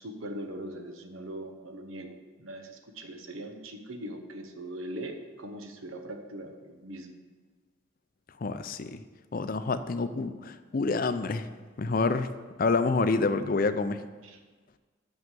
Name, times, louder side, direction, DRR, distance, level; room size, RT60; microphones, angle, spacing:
voice 1, 0.0-7.2 14.2-14.4, right 1 dB, 85° right, 6 dB, 1.0 m, -41 dB
voice 2, 8.4-9.0 9.3-11.5 11.8-12.3 12.6-14.0, left 3 dB, 45° left, 11 dB, 0.4 m, -27 dB
6.4 x 6.0 x 7.4 m, 1.4 s
head